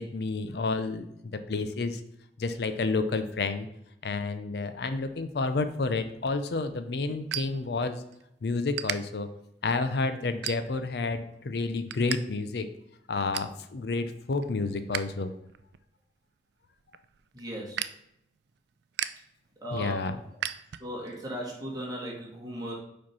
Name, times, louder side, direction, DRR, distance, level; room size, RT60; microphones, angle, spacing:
voice 1, 0.0-2.0 2.4-3.7 4.0-8.0 8.4-9.3 9.6-12.7 13.1-15.3 19.7-20.2, left 3 dB, 70° left, 10 dB, 0.5 m, -30 dB
sound 1, 6.2-8.2 8.5-9.0 9.5-9.8 10.3-11.0 11.4-12.2 12.5-12.6 12.9-13.6 14.0-15.0 15.4-21.2, right 10 dB, 75° right, 0.4 m, -37 dB
voice 2, 17.3-17.8 19.6-20.2 20.8-22.7, equal, 20° right, -3 dB, 1.8 m, -36 dB
5.1 x 4.5 x 5.4 m, 0.78 s
head